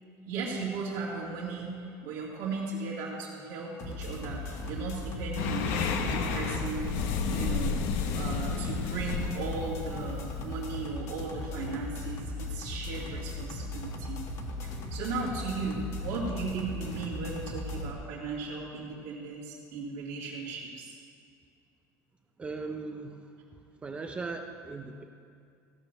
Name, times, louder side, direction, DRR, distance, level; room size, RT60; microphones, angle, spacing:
voice 1, 0.3-7.8 8.1-14.2 14.6-20.9, right 4 dB, 80° right, -8 dB, 2.2 m, -36 dB
sound 1, 3.8-17.9, left 2 dB, 40° left, 1.2 m, -37 dB
sound 2, 5.4-10.9, left 5 dB, 90° left, 1.0 m, -32 dB
voice 2, 22.4-23.4 23.8-25.0, right 4 dB, 15° right, 4 dB, 0.5 m, -38 dB
15.5 x 6.4 x 6.5 m, 2.4 s
cardioid pair, 170°, 8 cm